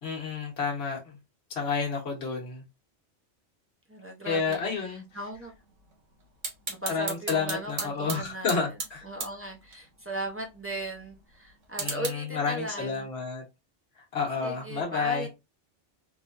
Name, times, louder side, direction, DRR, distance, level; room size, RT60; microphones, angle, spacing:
voice 1, 0.0-1.2 1.5-2.6 4.2-5.0 6.9-9.0 11.8-13.4 14.1-15.3, left 5 dB, 60° left, 1.3 m, -30 dB
voice 2, 3.9-5.5 6.7-8.8 9.0-13.1 14.4-15.3, right 1 dB, 20° right, 0.4 m, -37 dB
sound 1, 4.4-12.1, right 4 dB, 80° right, 1.3 m, -40 dB
3.4 x 2.6 x 2.4 m
omnidirectional pair, 1.2 m